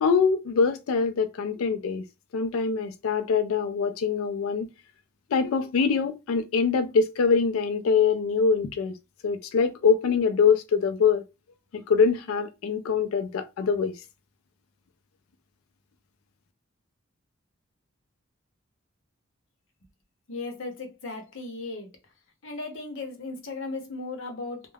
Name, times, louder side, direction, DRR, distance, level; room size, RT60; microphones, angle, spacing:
voice 1, 0.0-2.0 2.3-4.7 5.3-8.9 9.2-11.2 11.7-14.0, left 5 dB, 85° left, 0.4 m, -24 dB
voice 2, 20.3-21.9 22.4-24.7, left 3 dB, 65° left, 0.8 m, -36 dB
2.3 x 2.1 x 3.2 m
head